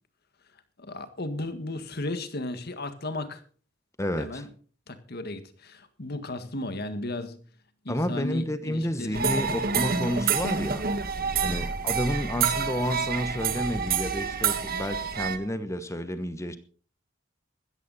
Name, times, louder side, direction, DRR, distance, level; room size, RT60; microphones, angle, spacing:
voice 1, 0.8-3.4 4.1-4.5 4.9-7.4 7.8-9.2 11.4-11.6, left 2 dB, 55° left, 1.8 m, -35 dB
voice 2, 4.0-4.4 7.9-10.8 11.4-16.6, equal, 15° left, 1.1 m, -30 dB
sound 1, 9.1-15.4, right 6 dB, 50° right, 1.7 m, -28 dB
16.0 x 14.0 x 4.2 m
head